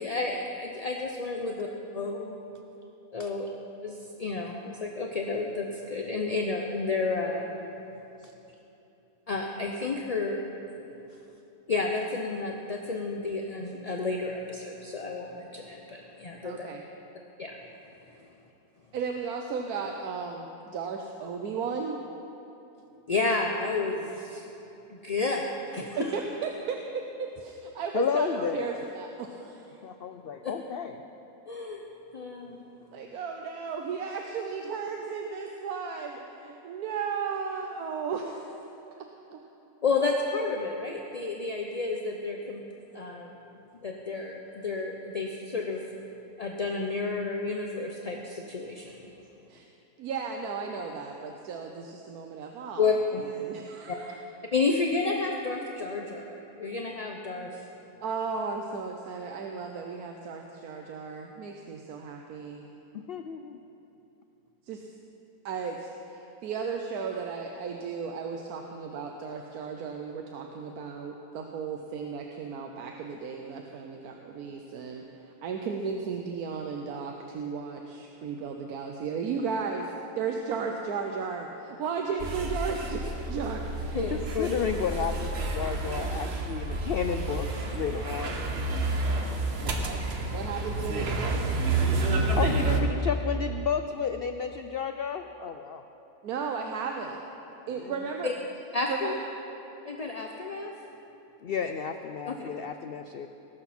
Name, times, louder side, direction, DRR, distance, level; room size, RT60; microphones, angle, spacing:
voice 1, 0.0-1.7 1.9-2.4 3.1-3.5 3.8-7.5 9.3-10.4 11.7-16.7 17.4-17.6 23.1-24.4 24.9-25.9 30.4-30.5 31.5-31.8 32.1-32.6 39.8-42.6 42.9-43.3 43.8-45.8 46.4-49.1 52.8-53.2 53.9-54.0 54.5-57.6 83.9-84.5 98.2-98.3 98.7-99.1 99.9-100.7 102.3-102.4, left 3 dB, 35° left, 1 dB, 0.6 m, -31 dB
voice 2, 16.4-16.8 18.9-22.0 26.0-29.8 32.9-38.6 39.3-39.4 49.5-49.7 50.0-52.9 53.2-54.1 58.0-62.6 64.7-64.9 65.4-84.2 89.6-90.0 90.3-91.6 96.2-97.2 97.7-98.3 98.9-99.1, right 5 dB, 80° right, 3 dB, 1.3 m, -35 dB
voice 3, 27.9-28.8 29.8-31.0 62.9-63.6 84.1-88.4 92.3-95.8 97.8-98.0 101.4-103.3, left 6 dB, 85° left, 7 dB, 0.5 m, -32 dB
sound 1, 82.2-92.8, right 2 dB, 45° right, 1.3 m, -29 dB
20.0 x 12.0 x 4.3 m, 3.0 s
omnidirectional pair, 1.6 m